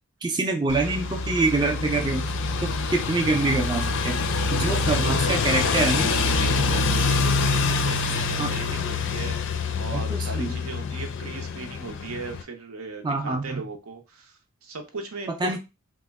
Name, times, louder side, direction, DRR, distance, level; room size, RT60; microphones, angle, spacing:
voice 1, 0.2-2.3 2.6-4.2 4.5-6.1 8.4-8.5 9.9-10.5 13.0-13.6 15.4-15.6, right 3 dB, 20° right, 3 dB, 0.4 m, -25 dB
sound 1, 0.7-12.4, left 4 dB, 60° left, 0.4 m, -25 dB
voice 2, 4.7-5.7 6.0-15.6, right 4 dB, 75° right, 5 dB, 0.7 m, -37 dB
3.0 x 2.1 x 3.4 m, 0.26 s
head